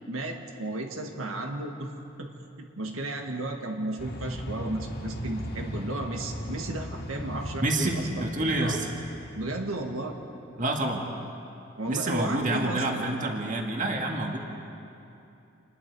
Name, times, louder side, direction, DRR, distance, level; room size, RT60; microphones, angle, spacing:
voice 1, 0.1-1.9 2.2-2.3 2.6-8.2 8.6-8.8 9.4-10.2 11.8-13.0, right 2 dB, 85° right, 3 dB, 1.7 m, -34 dB
sound 1, 4.0-9.6, equal, 50° left, 2.3 m, -37 dB
voice 2, 7.6-8.9 10.6-11.1 11.9-14.4, right 2 dB, 40° right, 2 dB, 1.8 m, -28 dB
27.5 x 20.5 x 4.7 m, 2.8 s
head